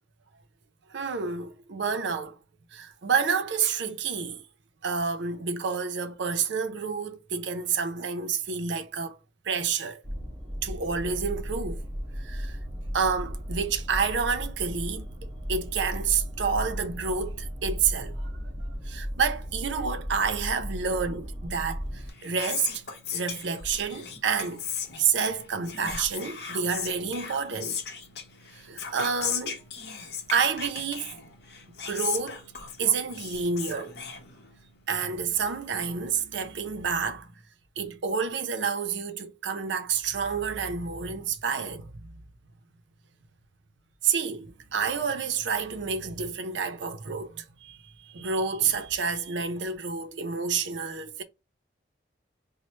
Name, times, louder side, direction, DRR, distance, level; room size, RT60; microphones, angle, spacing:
voice 1, 0.9-2.4 2.7-4.4 4.8-9.2 9.4-10.0 10.6-11.8 12.2-12.6 12.9-18.5 18.8-22.8 23.1-24.6 25.0-27.8 28.5-29.6 30.3-31.1 31.9-32.4 32.8-34.0 34.9-37.3 37.8-42.1 44.0-51.2, right 5 dB, 75° right, 0.5 m, -29 dB
sound 1, 10.0-22.1, equal, 20° right, 0.6 m, -35 dB
Whispering, 21.9-34.8, left 7 dB, 60° left, 0.7 m, -37 dB
3.0 x 2.0 x 4.1 m
head